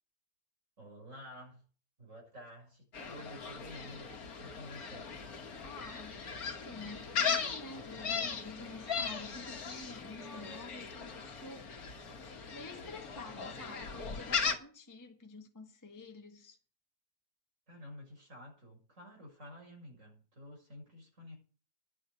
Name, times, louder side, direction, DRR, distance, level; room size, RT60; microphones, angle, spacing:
voice 1, 0.8-1.6 2.0-5.1 17.7-21.3, left 1 dB, 55° right, 6.8 m, -51 dB
Gull seagull, 2.9-14.6, left 6 dB, 70° left, 1.9 m, -38 dB
voice 2, 5.6-6.2 6.4-11.7 12.5-16.6, left 3 dB, 15° left, 1.4 m, -48 dB
11.0 x 6.8 x 8.9 m
omnidirectional pair, 1.6 m